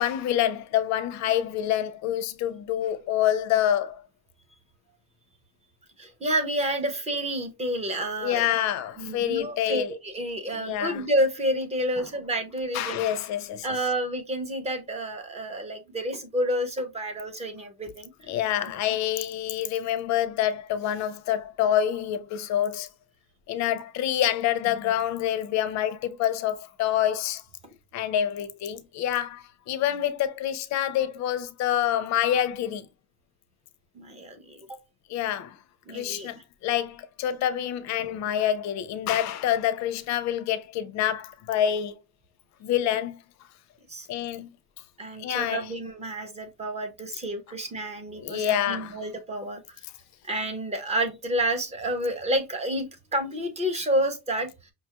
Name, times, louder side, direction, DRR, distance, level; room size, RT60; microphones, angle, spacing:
voice 1, 0.0-4.0 8.2-9.9 10.5-11.0 12.7-13.7 18.3-22.9 23.5-27.4 27.9-32.9 35.1-35.6 35.9-41.9 42.6-43.2 44.1-44.5 45.2-45.7 48.2-49.0, left 11 dB, 40° left, 0.4 m, -27 dB
voice 2, 6.0-8.6 9.0-13.0 13.6-18.3 33.9-34.8 35.9-36.3 43.9-44.1 45.0-49.6 50.2-54.7, right 1 dB, 15° right, 0.5 m, -29 dB
5.6 x 2.3 x 2.8 m
cardioid pair, 155°, 45 cm